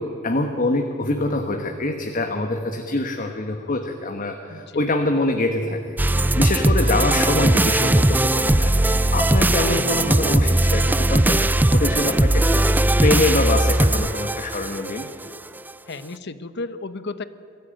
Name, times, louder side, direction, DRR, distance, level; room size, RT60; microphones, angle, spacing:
voice 1, 0.0-6.0 6.4-15.1, left 2 dB, 40° left, 4 dB, 1.3 m, -25 dB
voice 2, 4.5-4.8 15.9-17.2, left 3 dB, 60° left, 12 dB, 1.0 m, -33 dB
sound 1, 6.0-15.1, right 1 dB, 10° right, 0.4 m, -19 dB
22.0 x 14.0 x 9.1 m, 2.7 s
head